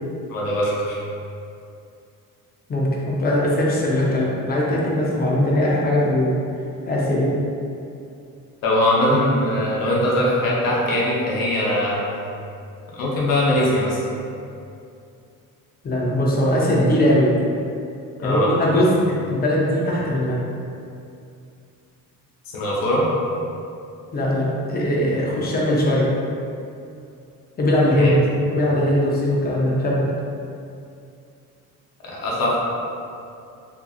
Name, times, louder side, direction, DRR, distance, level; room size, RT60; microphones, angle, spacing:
voice 1, 0.3-1.0 8.6-12.0 12.9-14.0 18.2-18.5 22.5-23.0 27.9-28.2 32.0-32.6, left 1 dB, 80° left, -5 dB, 0.8 m, -21 dB
voice 2, 2.7-6.3 6.9-7.3 15.8-17.3 18.2-18.9 19.3-20.4 24.1-26.1 27.6-28.2 28.5-30.1, left 1 dB, 30° left, -4 dB, 0.5 m, -20 dB
2.6 x 2.5 x 2.3 m, 2.5 s
cardioid pair, 125°, 33 cm